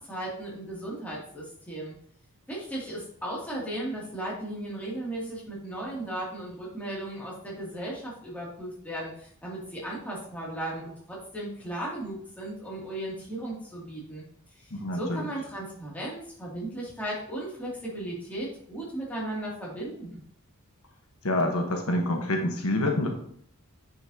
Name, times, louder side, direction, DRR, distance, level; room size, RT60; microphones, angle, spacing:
voice 1, 0.1-1.9 2.5-14.2 14.6-20.2, right 1 dB, 5° left, -5 dB, 2.5 m, -36 dB
voice 2, 14.7-15.3 21.2-23.1, left 1 dB, 75° left, 2 dB, 1.2 m, -27 dB
9.2 x 5.6 x 2.8 m, 0.63 s
head